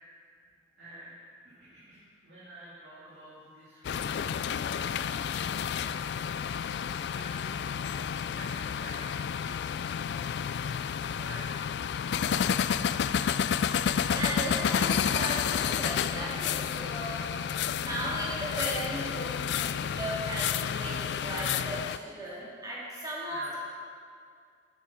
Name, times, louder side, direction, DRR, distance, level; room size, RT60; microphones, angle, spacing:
voice 1, 0.1-0.5 0.8-1.1 1.4-4.7 5.6-6.0 6.4-8.0 8.3-9.8 10.5-10.8 11.0-12.5 23.3-23.6, right 1 dB, 70° right, -11 dB, 2.8 m, -49 dB
sound 1, 3.8-22.0, left 8 dB, 70° left, 0.3 m, -30 dB
voice 2, 14.1-17.3 17.8-23.4, right 1 dB, 20° right, -7 dB, 2.7 m, -36 dB
9.5 x 9.0 x 6.0 m, 2.2 s
head